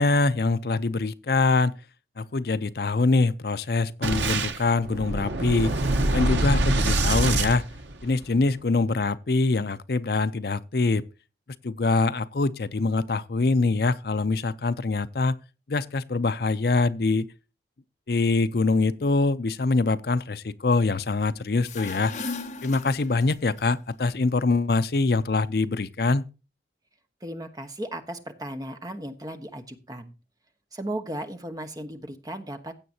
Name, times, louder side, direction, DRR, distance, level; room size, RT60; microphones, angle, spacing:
voice 1, 0.0-1.7 2.2-5.8 6.1-7.7 8.0-11.0 11.6-15.4 15.7-17.3 18.1-22.1 22.6-26.2, left 3 dB, 60° left, 0.6 m, -24 dB
Boom, 4.0-8.4, right 2 dB, 85° right, 1.1 m, -25 dB
sound 1, 21.5-23.6, left 3 dB, 40° left, 1.4 m, -36 dB
voice 2, 27.2-30.1 30.7-32.7, right 1 dB, 20° right, 1.2 m, -36 dB
16.0 x 7.8 x 2.8 m
head